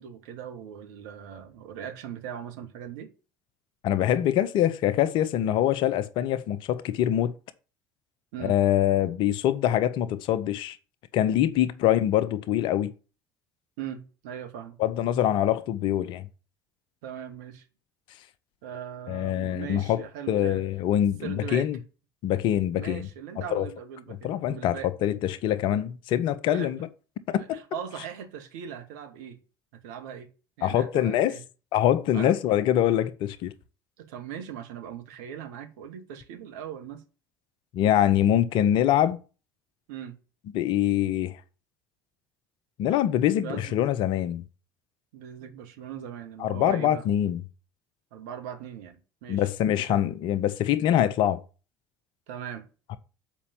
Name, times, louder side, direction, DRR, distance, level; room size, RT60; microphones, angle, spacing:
voice 1, 0.0-3.1 8.3-8.5 13.8-14.8 17.0-17.6 18.6-20.6 21.2-21.7 22.8-24.9 26.5-26.8 27.4-29.4 29.7-30.3 30.6-31.4 32.1-32.3 34.0-37.0 39.9-40.2 43.4-43.8 45.1-47.0 48.1-49.5 49.9-50.0 52.3-52.7, right 9 dB, 65° right, 1.6 m, -39 dB
voice 2, 3.8-7.4 8.4-10.8 11.1-12.9 14.8-16.3 19.1-20.0 20.3-21.8 22.2-23.1 23.5-23.7 24.2-24.8 25.0-26.8 27.3-27.6 30.6-31.4 31.7-33.5 37.7-39.2 40.5-41.4 42.8-44.4 46.4-47.4 49.3-51.4, left 11 dB, 55° left, 0.9 m, -24 dB
7.3 x 5.4 x 7.1 m
figure-of-eight pair, 60°, 10 cm